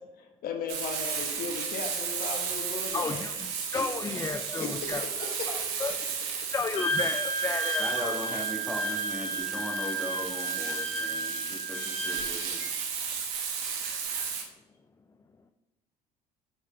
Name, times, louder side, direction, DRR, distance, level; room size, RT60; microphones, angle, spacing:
voice 1, 0.0-3.2 3.7-3.8 4.6-5.7 6.0-6.1, left 5 dB, 60° left, 4 dB, 1.1 m, -37 dB
Frying (food), 0.7-14.4, right 6 dB, 80° right, 1.1 m, -34 dB
voice 2, 2.9-6.0 6.3-8.1 13.8-14.3, left 4 dB, 20° left, 7 dB, 0.4 m, -34 dB
Wind instrument woodwind instrument, 6.8-12.7, right 2 dB, 35° left, 1.9 m, -33 dB
voice 3, 7.8-12.6, equal, 5° right, 1 dB, 1.5 m, -38 dB
6.9 x 4.4 x 3.2 m, 1.0 s
hypercardioid pair, 70°, 17 cm